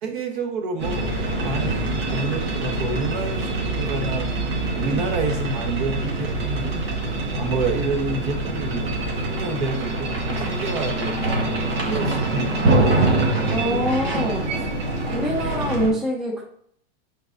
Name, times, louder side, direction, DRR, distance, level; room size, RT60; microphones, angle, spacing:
voice 1, 0.0-4.3 4.8-6.7 7.4-8.9 9.3-11.3 11.9-12.5 12.7-13.0, right 3 dB, 55° right, 4 dB, 1.3 m, -29 dB
sound 1, 0.8-15.9, right 2 dB, 80° right, 1.8 m, -24 dB
voice 2, 13.5-14.4 15.1-16.4, equal, ahead, -1 dB, 0.4 m, -25 dB
8.6 x 4.0 x 2.7 m, 0.68 s
supercardioid pair, 160°, 30 cm